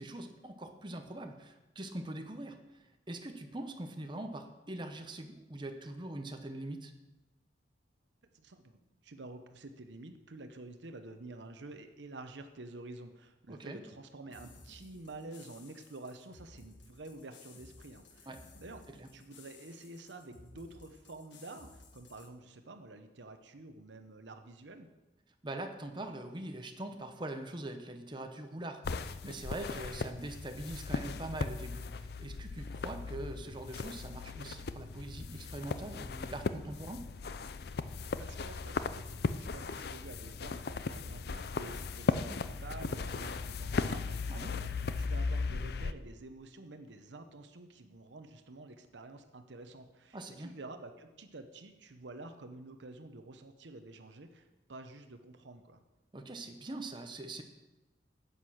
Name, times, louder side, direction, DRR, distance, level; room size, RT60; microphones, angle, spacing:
voice 1, 0.0-6.9 13.5-13.8 18.3-18.4 19.0-19.1 25.4-37.1 44.3-44.5 50.1-50.5 56.1-57.4, right 1 dB, 25° right, 5 dB, 0.8 m, -43 dB
voice 2, 8.3-18.3 18.6-18.8 19.1-24.9 38.1-55.8, right 2 dB, 75° right, 7 dB, 0.9 m, -49 dB
sound 1, 14.3-22.3, left 3 dB, 80° left, 1.3 m, -57 dB
sound 2, 28.8-45.9, left 4 dB, 55° left, 0.5 m, -37 dB
10.0 x 8.3 x 6.3 m, 1.0 s
head